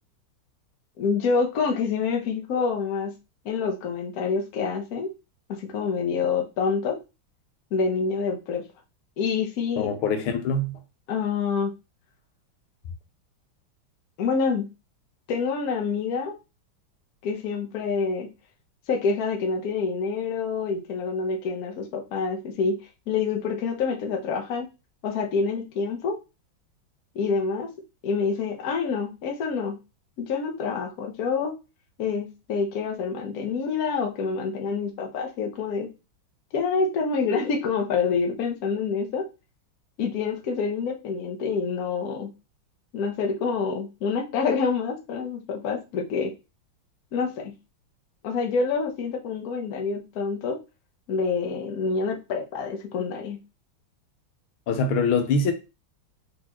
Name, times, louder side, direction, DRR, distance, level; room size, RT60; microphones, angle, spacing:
voice 1, 1.0-3.1 3.4-5.1 5.5-7.0 7.7-8.6 9.2-9.9 11.1-11.7 14.2-14.7 15.3-16.3 17.2-18.3 18.9-22.7 23.1-24.7 25.0-26.2 27.1-27.7 28.0-29.7 30.2-31.5 32.0-35.9 36.5-39.3 40.0-42.3 42.9-46.3 47.1-47.5 48.2-50.6 51.1-53.4, left 5 dB, 55° left, 1.1 m, -27 dB
voice 2, 9.8-10.8 54.7-55.5, left 4 dB, 90° left, 1.6 m, -24 dB
3.9 x 3.7 x 2.9 m
omnidirectional pair, 2.3 m